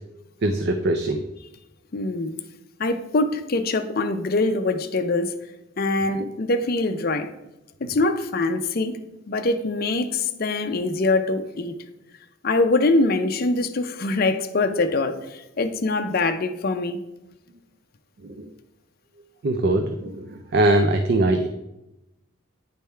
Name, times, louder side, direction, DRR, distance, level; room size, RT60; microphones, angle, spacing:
voice 1, 0.4-1.2 18.2-18.4 19.4-21.5, right 2 dB, 50° right, 0.4 m, -21 dB
voice 2, 1.9-2.4 2.8-5.3 5.8-7.3 7.8-9.0 9.3-11.7 12.4-17.0, left 2 dB, 45° left, 0.5 m, -23 dB
9.3 x 3.5 x 4.4 m
head